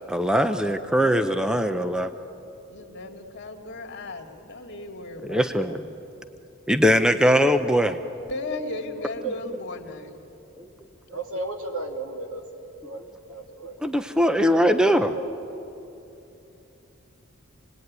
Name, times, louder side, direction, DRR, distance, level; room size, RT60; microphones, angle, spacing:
voice 1, 0.1-2.1 5.3-5.8 6.7-8.0 13.8-15.1, equal, 5° right, 8 dB, 0.6 m, -21 dB
voice 2, 2.7-5.8 8.3-10.2, left 2 dB, 55° left, 3 dB, 2.4 m, -36 dB
voice 3, 9.0-9.4 11.1-15.2, right 2 dB, 90° right, 3 dB, 2.8 m, -36 dB
28.0 x 19.5 x 9.6 m, 2.9 s
head